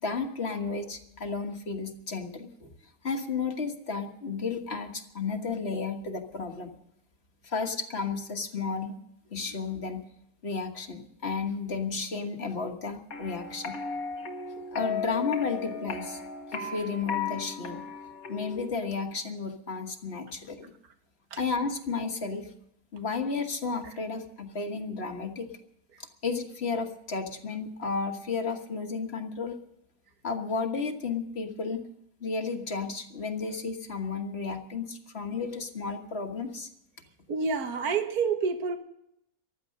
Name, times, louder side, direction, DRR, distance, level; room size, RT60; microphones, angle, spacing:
voice 1, 0.0-2.7 3.0-6.8 7.4-8.9 9.3-10.0 10.4-13.8 14.7-16.2 16.5-17.9 18.3-20.7 21.4-22.5 22.9-25.5 26.0-29.6 30.2-31.8 32.2-36.7, left 4 dB, 45° left, 1.6 m, -33 dB
sound 1, 13.1-18.7, left 5 dB, 70° left, 2.0 m, -35 dB
voice 2, 37.3-38.8, right 5 dB, 75° right, 1.8 m, -29 dB
15.0 x 12.0 x 6.5 m
omnidirectional pair, 1.6 m